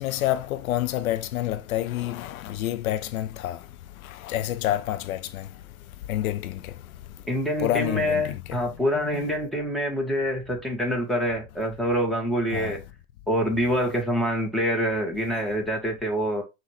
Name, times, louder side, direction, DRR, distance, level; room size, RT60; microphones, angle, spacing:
voice 1, 0.0-3.6 4.2-5.5 6.1-6.7 7.6-8.4 9.1-9.2 12.5-12.7, left 13 dB, 80° left, 0.6 m, -28 dB
voice 2, 7.3-12.8 13.3-16.4, equal, ahead, 1.4 m, -26 dB
5.6 x 2.7 x 3.0 m
hypercardioid pair, 95°, 41 cm